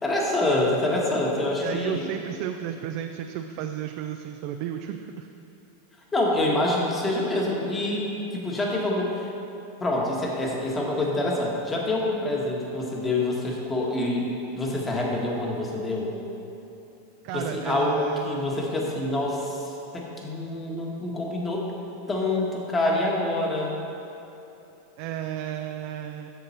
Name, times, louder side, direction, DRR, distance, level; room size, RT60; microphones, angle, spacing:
voice 1, 0.0-2.1 6.1-8.1 8.3-9.2 9.8-14.3 14.5-16.1 17.3-21.6 22.1-23.7, left 2 dB, 15° left, -2 dB, 1.6 m, -26 dB
voice 2, 1.6-5.3 17.2-18.5 25.0-26.3, right 10 dB, 55° right, 6 dB, 0.4 m, -33 dB
7.7 x 6.6 x 4.4 m, 2.9 s
hypercardioid pair, 105°, 0 cm